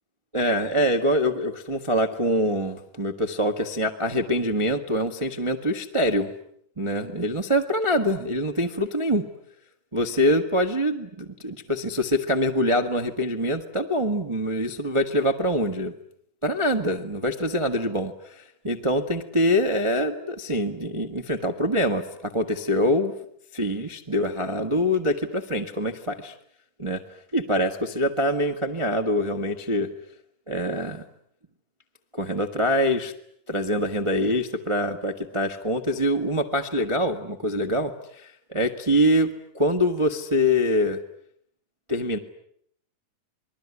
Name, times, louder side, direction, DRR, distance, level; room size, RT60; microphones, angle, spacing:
voice 1, 0.3-6.3 6.8-9.2 9.9-15.9 16.4-23.1 23.5-26.3 26.8-27.0 27.3-29.9 30.5-31.0 32.1-33.1 33.5-39.3 39.5-41.0 41.9-42.2, equal, 45° right, 4 dB, 0.4 m, -24 dB
28.5 x 21.5 x 9.8 m, 0.69 s
omnidirectional pair, 3.9 m